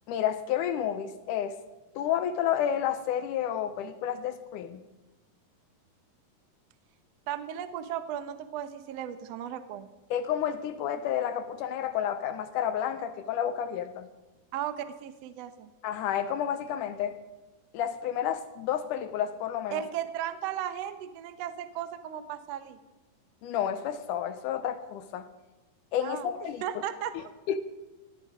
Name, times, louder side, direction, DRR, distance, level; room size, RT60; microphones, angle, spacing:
voice 1, 0.1-1.6 2.0-4.8 10.1-14.1 15.8-17.2 17.7-19.8 23.4-25.3 25.9-26.6 27.1-27.6, left 9 dB, 75° left, 11 dB, 2.0 m, -30 dB
voice 2, 7.3-9.9 14.5-15.7 19.7-22.8 26.0-27.3, right 10 dB, 75° right, 10 dB, 1.5 m, -36 dB
18.5 x 13.5 x 5.1 m, 1.1 s
omnidirectional pair, 4.2 m